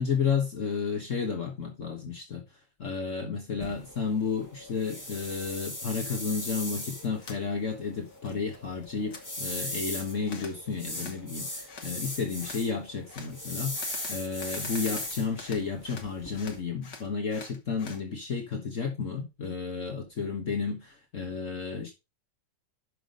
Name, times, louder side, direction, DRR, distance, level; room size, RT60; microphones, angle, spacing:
voice 1, 0.0-2.4 2.8-21.9, left 5 dB, 50° left, 1.6 m, -32 dB
sound 1, 3.6-16.6, left 1 dB, 10° left, 1.7 m, -39 dB
sound 2, 7.2-7.4 7.8-8.6 8.8-9.2 10.2-10.6 10.9-11.2 11.7-11.9 12.4-12.6 13.1-13.3 13.7-16.1 16.3-18.0, left 5 dB, 75° left, 2.3 m, -45 dB
8.2 x 6.0 x 5.0 m
omnidirectional pair, 1.9 m